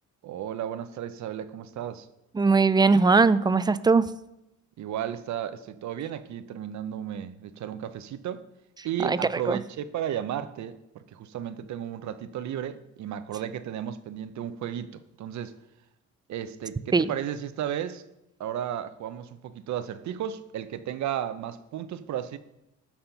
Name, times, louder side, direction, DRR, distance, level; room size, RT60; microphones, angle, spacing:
voice 1, 0.2-2.1 4.8-8.4 8.8-15.6 16.3-18.0 18.4-22.4, right 10 dB, 70° right, 12 dB, 0.7 m, -34 dB
voice 2, 2.4-4.1 9.0-9.2 9.5-9.6 16.9-17.1, right 4 dB, 15° right, 15 dB, 0.4 m, -20 dB
13.0 x 4.3 x 5.7 m, 0.89 s
cardioid pair, 90°, 30 cm